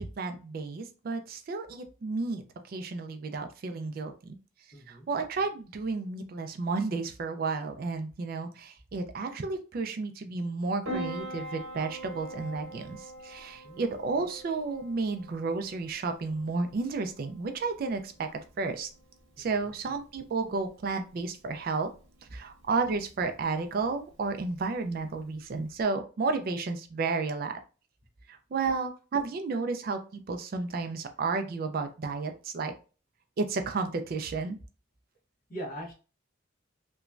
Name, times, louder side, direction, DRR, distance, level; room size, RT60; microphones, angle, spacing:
voice 1, 0.0-4.3 4.9-18.9 19.4-21.9 22.3-27.5 28.3-32.7 33.4-34.6, right 4 dB, 50° right, 7 dB, 0.3 m, -32 dB
voice 2, 4.7-5.1 13.6-13.8 19.4-19.7 35.5-35.9, right 1 dB, 45° left, -2 dB, 1.0 m, -41 dB
Piano, 10.8-25.8, right 1 dB, 85° right, 0.9 m, -45 dB
3.0 x 2.2 x 2.4 m, 0.34 s
head